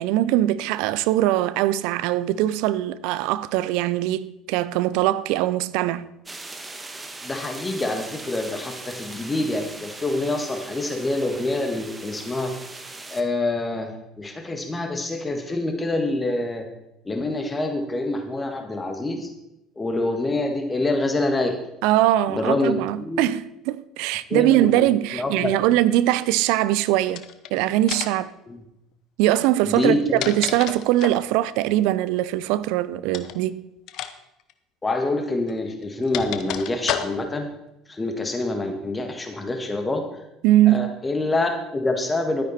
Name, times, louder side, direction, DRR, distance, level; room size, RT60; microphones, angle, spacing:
voice 1, 0.0-6.1 21.8-28.3 29.2-33.7 40.4-40.9, right 14 dB, 65° right, 0.5 m, -22 dB
sound 1, 6.3-13.2, right 2 dB, 20° right, 1.5 m, -39 dB
voice 2, 7.2-12.5 13.1-16.6 17.0-19.3 19.7-21.6 22.3-23.3 24.3-24.9 25.1-25.5 28.5-28.6 29.6-30.2 34.8-37.5 37.9-40.0 40.7-42.4, left 2 dB, 20° left, 1.7 m, -26 dB
sound 2, 27.1-27.5 27.9-28.3 29.8-31.3 33.1-33.4 33.9-34.1 34.4-34.5 35.5-37.4, left 11 dB, 60° left, 0.9 m, -31 dB
12.0 x 9.6 x 4.3 m
hypercardioid pair, 65°, 0 cm